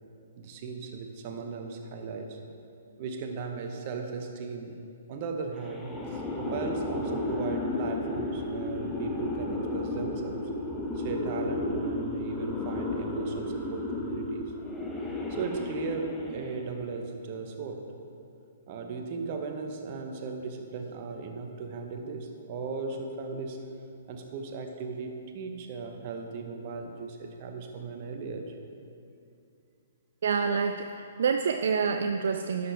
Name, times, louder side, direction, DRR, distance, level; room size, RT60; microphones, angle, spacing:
voice 1, 0.4-2.4 3.0-4.8 5.1-10.4 10.9-14.5 15.3-17.8 18.7-23.6 24.1-28.5, right 4 dB, 40° right, 4 dB, 1.0 m, -37 dB
sound 1, 5.6-16.7, left 2 dB, 10° left, 1.0 m, -33 dB
voice 2, 30.2-32.7, right 5 dB, 65° right, 7 dB, 0.3 m, -27 dB
11.0 x 6.7 x 3.4 m, 2.6 s
figure-of-eight pair, 125°, 0 cm